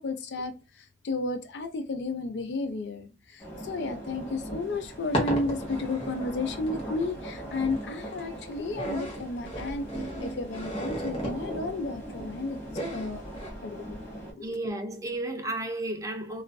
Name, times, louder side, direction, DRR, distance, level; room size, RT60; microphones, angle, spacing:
voice 1, 0.0-12.6 12.9-13.2 13.6-13.9 14.4-14.5, left 3 dB, 80° left, 0.5 m, -33 dB
sound 1, 3.4-14.3, right 1 dB, 15° left, 1.1 m, -39 dB
sound 2, 4.6-13.5, right 1 dB, 35° left, 1.0 m, -36 dB
voice 2, 14.4-16.4, right 1 dB, 20° right, 0.4 m, -33 dB
2.4 x 2.4 x 2.2 m
head